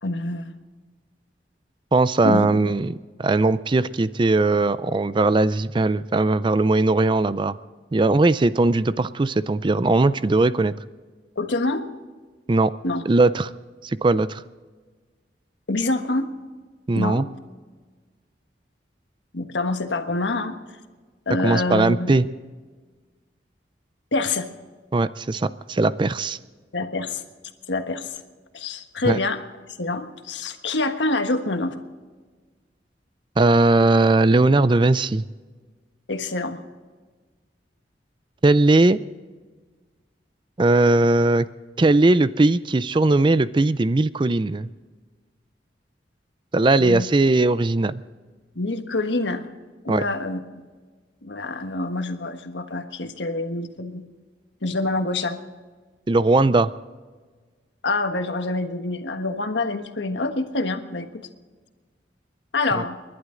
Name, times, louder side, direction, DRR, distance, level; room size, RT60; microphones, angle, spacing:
voice 1, 0.0-0.5 2.2-2.5 11.3-11.8 12.8-13.0 15.7-16.3 17.0-17.2 19.3-20.6 21.3-22.1 24.1-24.5 26.7-27.2 27.7-28.2 28.5-29.4 29.8-31.7 36.1-36.6 46.8-47.1 48.5-49.4 49.8-50.4 51.2-54.0 54.6-55.4 57.8-61.1 62.5-63.0, left 2 dB, 85° left, 6 dB, 1.4 m, -26 dB
voice 2, 1.9-7.6 7.9-10.7 12.5-12.7 13.1-13.5 13.8-14.4 16.9-17.2 21.4-22.3 24.9-26.4 29.0-29.2 33.4-35.3 38.4-39.0 40.6-41.5 41.8-44.7 46.5-48.0 49.9-50.0 56.1-56.7 62.7-62.8, right 2 dB, 25° right, 15 dB, 0.4 m, -19 dB
30.0 x 11.5 x 3.8 m, 1.4 s
head